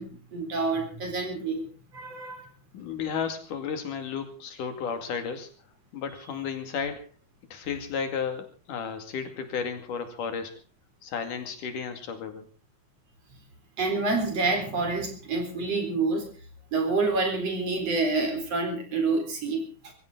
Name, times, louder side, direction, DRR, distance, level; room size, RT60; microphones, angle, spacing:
voice 1, 0.0-1.6 1.9-2.5 13.8-16.3 16.7-19.9, right 3 dB, 50° right, 5 dB, 5.1 m, -28 dB
voice 2, 2.7-5.5 5.9-7.0 7.5-10.5 11.0-12.5, left 6 dB, 90° left, 7 dB, 3.9 m, -33 dB
23.5 x 15.0 x 3.9 m, 0.36 s
omnidirectional pair, 3.6 m